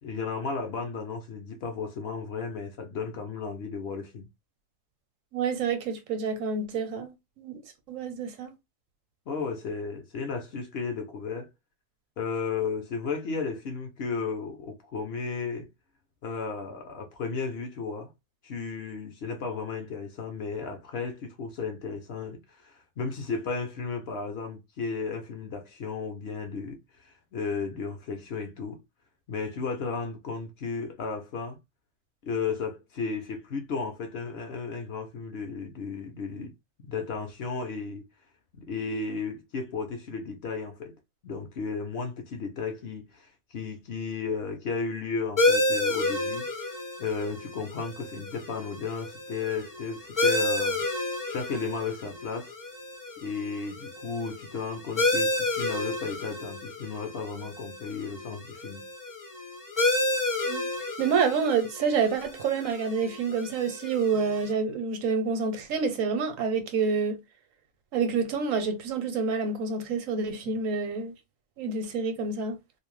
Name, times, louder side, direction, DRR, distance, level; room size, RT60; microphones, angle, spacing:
voice 1, 0.0-4.3 9.3-11.5 12.2-15.7 16.2-18.1 18.4-28.8 29.3-31.6 32.2-36.5 36.8-38.0 38.5-41.0 41.2-50.9 51.3-52.5 53.2-58.9, left 4 dB, 60° left, 0.7 m, -34 dB
voice 2, 5.3-7.6 7.9-8.5 60.5-60.7 61.0-67.2 67.9-71.1 71.6-72.6, right 5 dB, 80° right, 1.0 m, -28 dB
sound 1, 45.4-64.5, left 2 dB, 25° left, 0.4 m, -31 dB
2.5 x 2.0 x 3.0 m
omnidirectional pair, 1.4 m